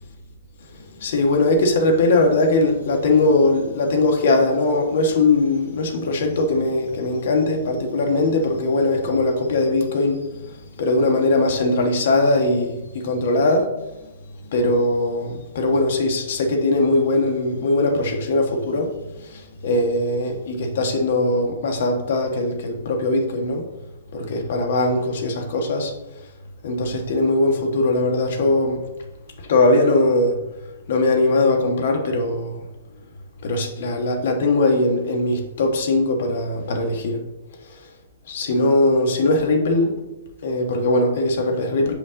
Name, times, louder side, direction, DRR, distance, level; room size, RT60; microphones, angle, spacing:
voice 1, 1.0-10.2 10.8-13.6 14.5-18.9 19.6-23.6 24.1-25.9 26.6-28.8 29.5-30.3 30.9-32.6 33.4-37.2 38.3-39.9 40.4-41.9, left 2 dB, 60° left, 1.3 m, -20 dB
6.7 x 5.1 x 3.7 m
hypercardioid pair, 155°, 0 cm